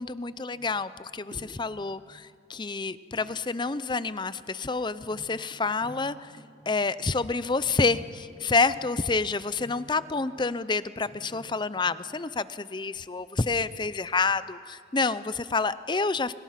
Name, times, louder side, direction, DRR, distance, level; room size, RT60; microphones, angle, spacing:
voice 1, 0.0-6.3 6.7-16.3, left 4 dB, 25° left, 15 dB, 0.6 m, -28 dB
sound 1, 0.5-1.0 1.3-1.7 3.2-3.3 5.1-10.1 11.0-11.5, right 1 dB, 45° right, 3.4 m, -50 dB
30.0 x 25.0 x 5.8 m, 2.1 s
head